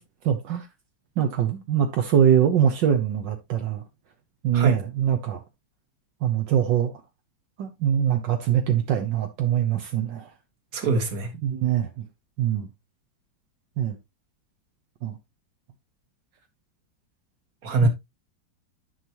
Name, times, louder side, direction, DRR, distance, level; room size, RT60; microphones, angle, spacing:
voice 1, 0.2-0.7 1.2-3.8 4.4-5.4 6.2-6.9 7.6-10.3 11.4-12.0 12.4-12.7 13.8-14.0 15.0-15.1 17.8-17.9, right 9 dB, 75° right, 1.7 m, -23 dB
voice 2, 10.7-11.3 17.6-17.9, right 3 dB, 50° right, 2.0 m, -23 dB
10.5 x 5.7 x 3.0 m
omnidirectional pair, 2.0 m